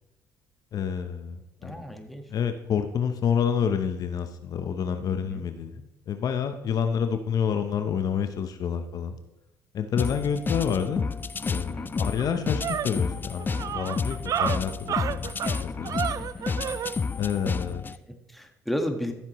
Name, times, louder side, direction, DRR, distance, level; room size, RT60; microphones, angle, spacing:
voice 1, 0.7-1.7 2.3-9.2 9.7-11.1 11.5-15.3 15.6-16.0 17.1-17.9, left 7 dB, 60° left, 8 dB, 0.9 m, -28 dB
voice 2, 1.6-2.2 5.1-5.5 11.6-11.9 16.1-16.6 18.1-19.1, equal, ahead, 4 dB, 1.5 m, -34 dB
sound 1, 10.0-18.0, left 5 dB, 25° left, 0.4 m, -31 dB
sound 2, 11.5-11.6 12.0-17.0, right 9 dB, 50° right, 0.4 m, -31 dB
13.5 x 7.4 x 3.1 m, 0.90 s
supercardioid pair, 75°, 7 cm